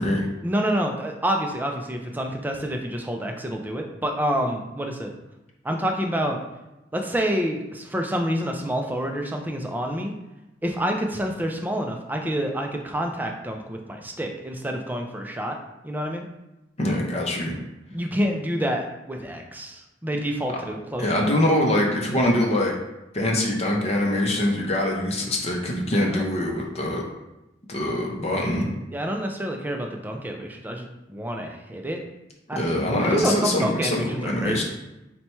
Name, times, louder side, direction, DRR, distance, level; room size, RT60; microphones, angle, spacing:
voice 1, 0.4-5.1 5.6-6.4 6.9-10.1 10.6-15.6 15.8-16.3 17.9-21.2 26.0-26.2 28.9-32.0 32.5-32.6 33.0-34.6, equal, 10° right, 2 dB, 0.4 m, -28 dB
voice 2, 16.8-17.5 21.0-22.7 23.1-27.0 27.7-28.7 32.6-34.6, left 1 dB, 35° left, 0 dB, 0.6 m, -23 dB
4.1 x 2.2 x 4.3 m, 0.97 s
head